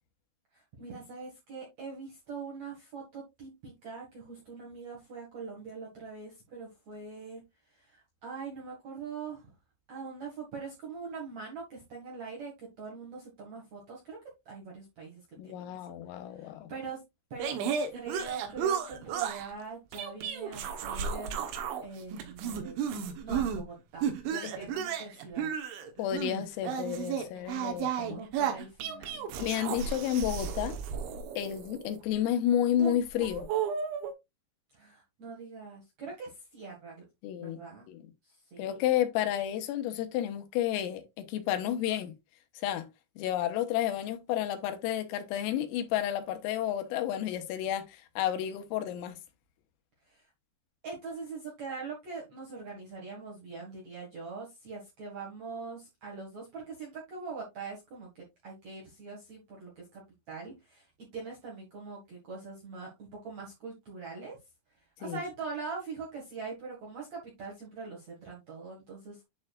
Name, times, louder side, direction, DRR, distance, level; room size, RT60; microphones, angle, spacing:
voice 1, 0.5-7.4 7.7-9.5 9.9-14.2 14.5-15.7 16.4-17.0 17.3-17.5 17.9-21.5 21.8-25.5 28.1-29.3 34.7-37.0 37.4-37.9 38.2-38.8 50.1-50.2 50.8-60.0 60.3-64.4 65.0-69.2, right 4 dB, 55° right, 1.9 m, -43 dB
voice 2, 15.4-16.7 26.0-28.2 29.4-30.8 31.4-33.5 37.2-37.6 37.9-38.0 38.6-42.1 42.6-42.9 43.2-49.2 65.0-65.2, left 11 dB, 90° left, 3.6 m, -31 dB
sound 1, 17.4-19.5 19.9-21.8 22.1-23.6 24.0-32.0 32.7-34.1, right 7 dB, 75° right, 3.2 m, -33 dB
11.0 x 4.4 x 2.4 m
omnidirectional pair, 5.9 m